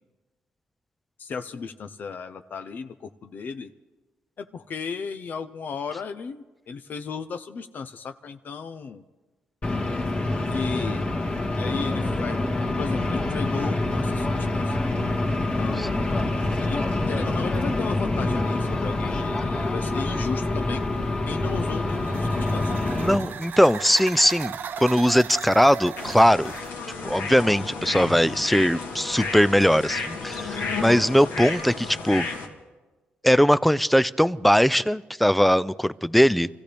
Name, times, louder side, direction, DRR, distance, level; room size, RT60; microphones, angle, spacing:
voice 1, 1.2-3.7 4.4-9.0 10.5-11.1 11.6-12.4 12.8-14.8 15.6-16.2 16.6-22.7, left 5 dB, 55° left, 9 dB, 0.7 m, -35 dB
sound 1, 9.6-23.1, left 2 dB, 35° left, 1.9 m, -26 dB
sound 2, 21.5-26.8, right 7 dB, 65° right, 0.7 m, -37 dB
voice 2, 23.0-24.5 24.8-26.5 27.0-32.3 33.2-36.5, equal, ahead, 17 dB, 0.4 m, -20 dB
sound 3, 25.9-32.5, left 4 dB, 85° left, 2.3 m, -32 dB
27.5 x 15.0 x 3.4 m, 1.2 s
cardioid pair, 105°, 4 cm